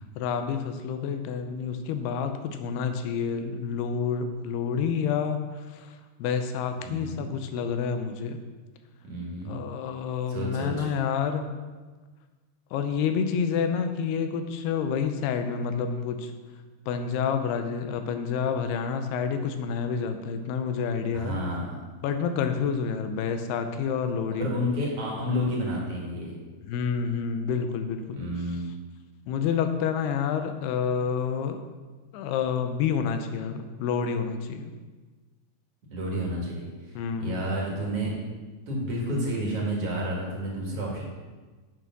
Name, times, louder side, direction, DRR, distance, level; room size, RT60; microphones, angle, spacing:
voice 1, 0.2-8.4 9.5-11.4 12.7-16.3 16.9-21.4 22.0-24.6 26.6-28.2 29.3-31.6 32.1-34.7 37.0-37.4, left 6 dB, 90° left, 7 dB, 2.7 m, -28 dB
voice 2, 6.8-7.3 9.0-9.6 10.3-10.9 21.1-21.8 24.3-26.3 28.1-28.7 35.9-38.2 38.7-41.0, equal, 45° right, -3 dB, 2.5 m, -30 dB
8.7 x 6.3 x 6.0 m, 1.3 s
omnidirectional pair, 4.6 m